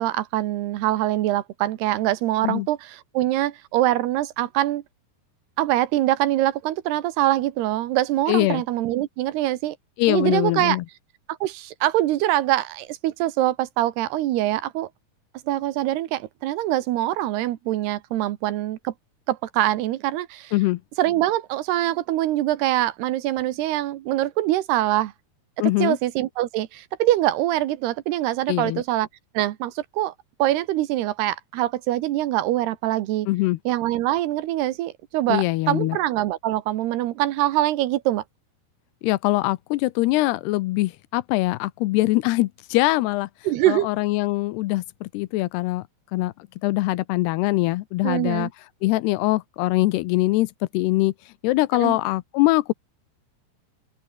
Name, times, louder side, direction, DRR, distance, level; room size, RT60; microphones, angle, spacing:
voice 1, 0.0-4.8 5.6-9.8 10.1-10.8 11.3-14.9 15.5-18.9 19.3-20.5 21.0-25.1 25.6-29.1 29.3-30.1 30.4-33.3 33.7-38.2 43.5-43.9 48.0-48.5 51.8-52.0, right 14 dB, 80° right, 3.1 m, -24 dB
voice 2, 8.3-8.6 10.0-10.8 20.5-20.8 25.6-26.0 28.5-28.8 33.3-33.6 35.3-36.0 39.0-43.3 43.7-45.8 46.1-46.3 46.6-48.5 48.8-51.1 51.4-52.7, left 19 dB, 80° left, 2.7 m, -22 dB
open air
omnidirectional pair, 4.8 m